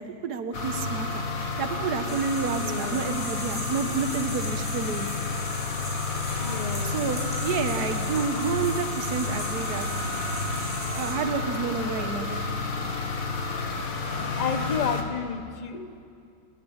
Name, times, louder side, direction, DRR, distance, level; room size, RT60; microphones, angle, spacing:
voice 1, 0.0-5.1 6.8-9.9 10.3-10.4 10.9-12.5, right 5 dB, 60° right, 8 dB, 1.6 m, -30 dB
sound 1, 0.5-15.0, left 3 dB, 50° left, 1.9 m, -30 dB
sound 2, 2.1-11.1, equal, 5° right, 6.0 m, -39 dB
voice 2, 2.5-3.2 6.4-7.0 14.4-16.1, left 6 dB, 35° left, 9 dB, 0.7 m, -32 dB
29.5 x 10.0 x 8.7 m, 2.3 s
omnidirectional pair, 2.0 m